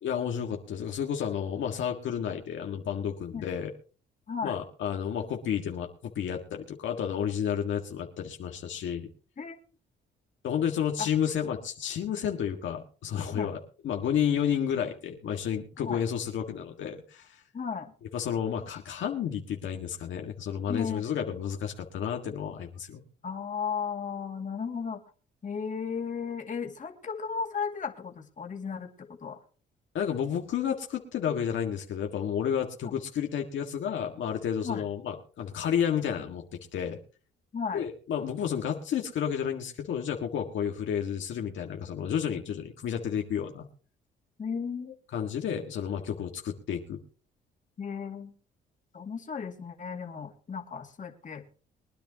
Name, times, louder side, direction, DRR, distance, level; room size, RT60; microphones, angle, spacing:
voice 1, 0.0-3.7 4.4-9.1 10.4-17.4 18.1-23.0 29.9-36.4 36.7-37.0 37.7-43.7 45.1-47.0, left 8 dB, 75° left, 2 dB, 1.8 m, -31 dB
voice 2, 17.5-17.9 20.7-21.2 23.2-25.0 25.4-29.4 32.8-32.9 34.6-34.8 37.5-37.8 44.4-44.9 47.8-48.3 48.9-51.4, left 6 dB, 40° left, 2 dB, 2.4 m, -35 dB
23.0 x 10.5 x 2.9 m, 0.38 s
cardioid pair, 90°, 20 cm